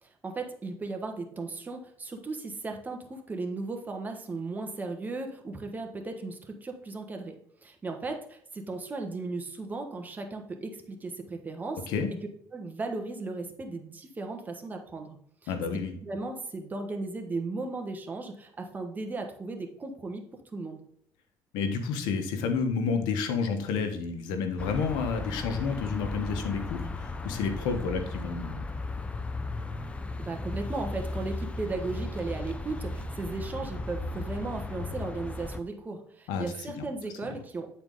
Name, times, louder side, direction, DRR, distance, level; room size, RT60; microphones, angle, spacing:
voice 1, 0.0-12.2 12.5-15.5 16.0-20.8 30.2-37.8, right 3 dB, 25° right, 4 dB, 1.3 m, -36 dB
voice 2, 15.5-15.9 21.5-28.6 36.3-36.5 36.8-36.9, left 5 dB, 85° left, 6 dB, 1.2 m, -30 dB
sound 1, 24.6-35.6, left 2 dB, 15° left, 0.6 m, -36 dB
8.9 x 4.4 x 3.8 m, 0.68 s
cardioid pair, 110°, 7 cm